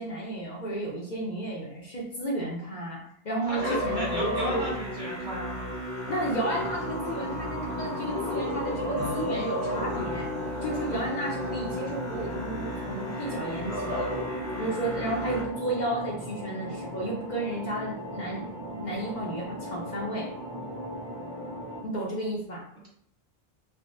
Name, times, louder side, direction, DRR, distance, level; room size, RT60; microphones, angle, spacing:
voice 1, 0.0-4.7 6.1-10.3 10.6-14.1 14.6-18.5 18.8-20.3 21.8-22.7, right 1 dB, 50° left, -4 dB, 0.7 m, -32 dB
voice 2, 3.4-5.5, equal, 50° right, -5 dB, 1.1 m, -34 dB
Musical instrument, 3.5-15.4, left 1 dB, 90° left, 1.3 m, -33 dB
sound 1, 6.6-21.8, equal, 20° right, 0.9 m, -38 dB
3.4 x 2.2 x 2.6 m, 0.66 s
omnidirectional pair, 1.1 m